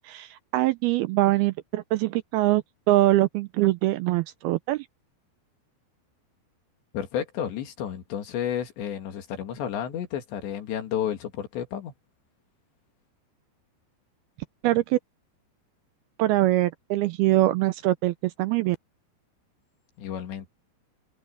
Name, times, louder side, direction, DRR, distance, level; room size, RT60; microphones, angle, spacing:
voice 1, 0.0-2.6 2.9-4.9 14.6-15.0 16.2-18.8, right 16 dB, 80° right, 2.3 m, -23 dB
voice 2, 6.9-11.9 20.0-20.5, left 9 dB, 85° left, 4.6 m, -31 dB
omnidirectional pair, 5.0 m